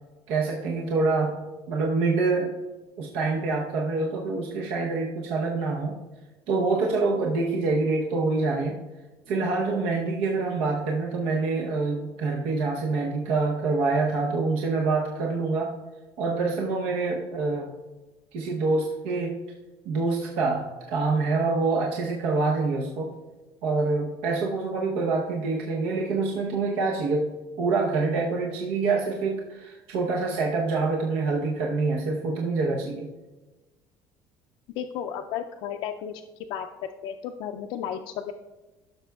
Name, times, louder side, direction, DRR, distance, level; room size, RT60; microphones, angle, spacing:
voice 1, 0.3-1.4 1.7-2.5 3.0-6.0 6.5-8.8 9.3-15.7 16.2-17.7 18.3-19.4 19.8-23.1 23.6-27.3 27.6-33.1, right 3 dB, 80° right, -1 dB, 0.9 m, -26 dB
voice 2, 34.8-36.2 36.5-38.3, left 9 dB, 65° left, 4 dB, 0.4 m, -33 dB
15.0 x 6.5 x 2.3 m, 1.2 s
cardioid pair, 160°, 9 cm